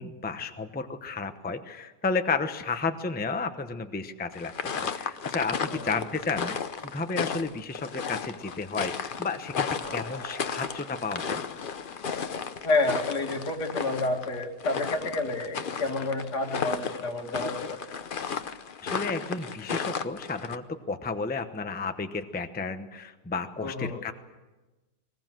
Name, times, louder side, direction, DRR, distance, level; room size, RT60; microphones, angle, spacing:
voice 1, 0.0-11.4 18.8-24.1, left 4 dB, 10° left, 8 dB, 0.7 m, -32 dB
sound 1, 4.3-20.6, left 6 dB, 45° left, 0.7 m, -34 dB
sound 2, 9.8-12.7, equal, 25° left, 5.3 m, -46 dB
voice 2, 12.6-17.8 23.6-24.0, left 2 dB, 80° left, 2 dB, 3.0 m, -29 dB
21.0 x 20.5 x 7.7 m, 1.2 s
omnidirectional pair, 1.8 m